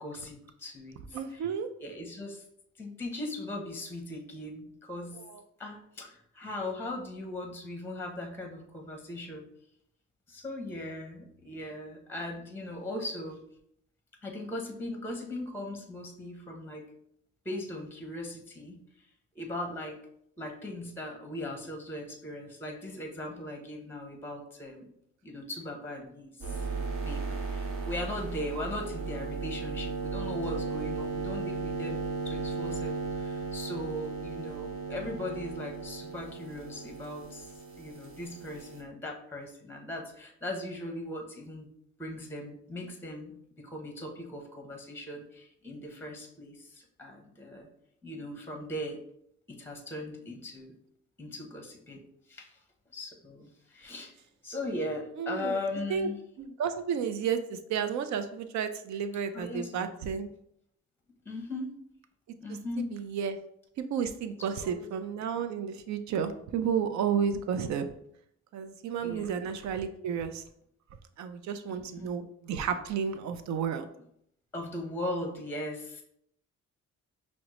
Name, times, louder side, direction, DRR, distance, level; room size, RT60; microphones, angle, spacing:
voice 1, 0.0-1.5 1.8-2.4 2.8-5.2 5.6-9.5 10.3-13.4 14.2-16.9 17.4-18.8 19.3-20.0 20.4-24.9 25.2-26.7 27.0-41.7 42.0-47.7 48.0-49.0 49.5-50.8 51.2-52.6 52.9-54.1 54.4-56.2 59.3-60.0 61.2-61.8 62.4-62.9 64.5-64.9 69.0-69.5 71.7-72.1 74.5-76.0, left 1 dB, 5° left, 3 dB, 0.7 m, -39 dB
voice 2, 1.1-1.7 5.1-5.4 55.2-55.6 55.9-56.1 56.4-60.3 62.5-63.4 63.8-67.9 68.5-70.4 71.2-73.9, right 7 dB, 65° right, 9 dB, 0.5 m, -32 dB
sound 1, 26.4-38.8, right 4 dB, 45° right, 1.0 m, -36 dB
5.9 x 2.1 x 2.9 m, 0.72 s
cardioid pair, 90°, 30 cm